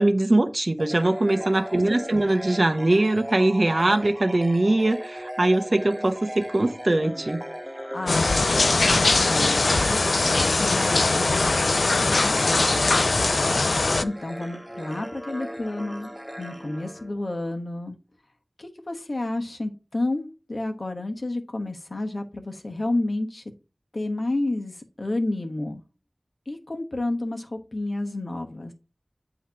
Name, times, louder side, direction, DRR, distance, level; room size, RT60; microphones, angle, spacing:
voice 1, 0.0-7.4, right 2 dB, 55° right, 0.7 m, -22 dB
sound 1, 0.8-17.5, equal, 10° right, 1.2 m, -38 dB
voice 2, 1.7-2.2 7.9-11.5 11.9-13.0 14.0-16.1 16.4-18.0 18.6-23.4 23.9-25.8 26.5-28.7, left 2 dB, 65° left, 1.1 m, -31 dB
sound 2, 8.1-14.0, left 3 dB, 90° left, 0.3 m, -21 dB
8.3 x 2.9 x 5.7 m
wide cardioid pair, 45°, 0 cm